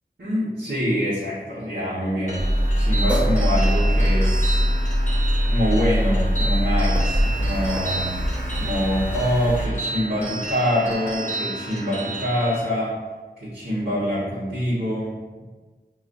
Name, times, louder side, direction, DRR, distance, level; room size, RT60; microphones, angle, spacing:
voice 1, 0.2-2.5 2.8-4.6 5.5-8.1 8.6-12.9 13.4-15.1, equal, 65° right, -11 dB, 1.3 m, -25 dB
sound 1, 2.3-12.6, right 2 dB, 40° left, 0.7 m, -32 dB
Car, 2.4-9.7, equal, 5° right, 0.8 m, -22 dB
5.9 x 2.4 x 2.6 m, 1.3 s
wide cardioid pair, 50°, 18 cm